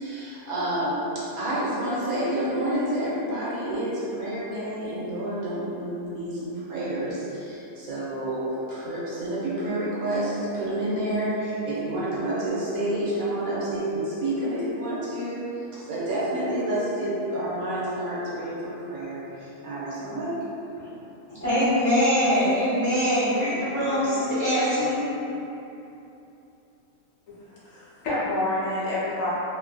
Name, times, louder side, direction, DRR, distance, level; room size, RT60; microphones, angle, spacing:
voice 1, 0.0-15.5 15.7-20.4, right 1 dB, 75° right, -9 dB, 1.1 m, -29 dB
voice 2, 21.3-25.0, equal, 15° right, -14 dB, 0.9 m, -23 dB
voice 3, 27.3-29.3, left 1 dB, 70° left, -9 dB, 1.0 m, -28 dB
2.7 x 2.5 x 2.2 m, 2.9 s
omnidirectional pair, 1.5 m